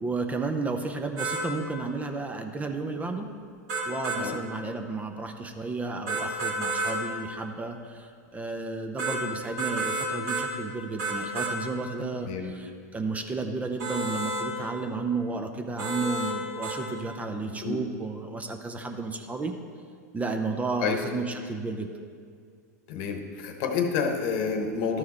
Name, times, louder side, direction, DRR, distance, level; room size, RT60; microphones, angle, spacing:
voice 1, 0.0-3.3 3.9-19.5 20.1-21.9, right 3 dB, 15° right, 5 dB, 0.5 m, -32 dB
sound 1, 1.2-1.4 3.7-4.2 6.1-7.0 9.0-9.2 9.6-10.5 11.0-11.5 13.8-14.5 15.8-16.4 16.6-16.8, right 2 dB, 60° right, 1.8 m, -30 dB
voice 2, 17.4-17.8 20.8-21.0 22.9-25.0, left 5 dB, 50° left, 5 dB, 1.0 m, -29 dB
12.5 x 4.7 x 4.2 m, 2.2 s
hypercardioid pair, 105°, 9 cm